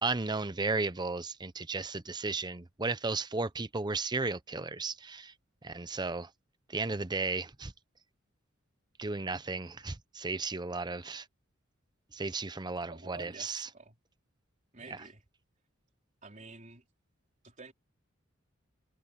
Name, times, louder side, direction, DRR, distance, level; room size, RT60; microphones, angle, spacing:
voice 1, 0.0-5.3 5.6-6.3 6.7-7.7 9.0-11.3 12.1-13.7 14.9-15.0, right 3 dB, 20° right, 0.8 m, -34 dB
voice 2, 12.9-14.0 14.7-15.2 16.2-16.8 17.4-17.7, right 3 dB, 40° right, 4.3 m, -49 dB
head